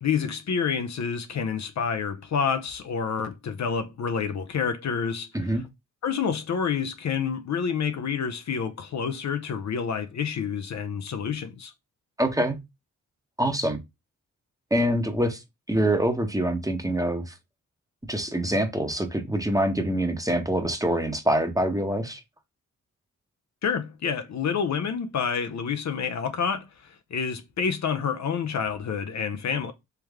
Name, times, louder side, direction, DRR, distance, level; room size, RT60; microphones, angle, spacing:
voice 1, 0.0-5.3 6.0-11.7 23.6-29.7, left 6 dB, 60° left, 0.7 m, -28 dB
voice 2, 12.2-12.6 13.4-13.8 14.7-15.4 15.7-17.3 18.0-22.2, right 1 dB, 10° right, 1.0 m, -25 dB
3.4 x 3.1 x 3.5 m
cardioid pair, 55°, 32 cm